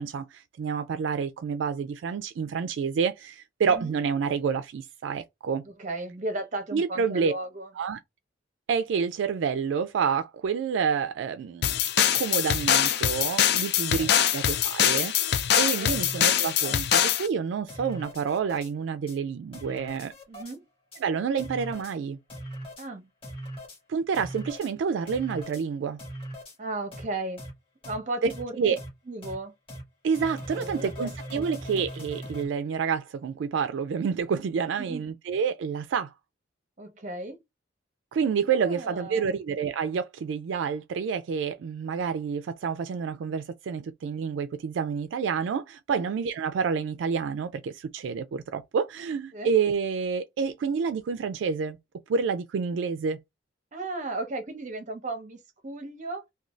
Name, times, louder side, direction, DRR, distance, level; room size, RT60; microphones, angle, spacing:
voice 1, 0.0-5.6 6.7-7.3 7.8-8.0 8.7-15.1 15.6-20.1 21.0-22.2 23.9-26.0 28.6-28.8 30.0-36.1 38.1-51.8 52.1-53.2, right 6 dB, 75° right, 0.3 m, -28 dB
voice 2, 5.7-7.7 14.0-14.2 15.8-15.9 20.3-20.6 22.8-23.1 26.6-27.4 27.9-28.8 29.1-29.5 30.5-31.4 34.8-35.1 36.8-37.4 38.5-39.4 45.9-46.0 49.3-49.5 53.7-56.2, right 2 dB, 40° right, 0.7 m, -35 dB
sound 1, 11.6-17.3, left 10 dB, 60° left, 0.4 m, -23 dB
sound 2, 15.8-16.9 17.2-17.3 17.7-18.7 19.1-19.2 19.5-20.6 20.9-21.0 21.4-21.9 22.3-22.9 23.2-23.8 24.1-24.7 25.1-25.6 26.0-26.6 26.9-27.0 27.4-27.5 27.8-28.0 28.3-28.4 28.8-28.9 29.2-29.3 29.7-29.8 30.1-32.5, equal, 30° left, 1.1 m, -40 dB
2.5 x 2.3 x 3.0 m
head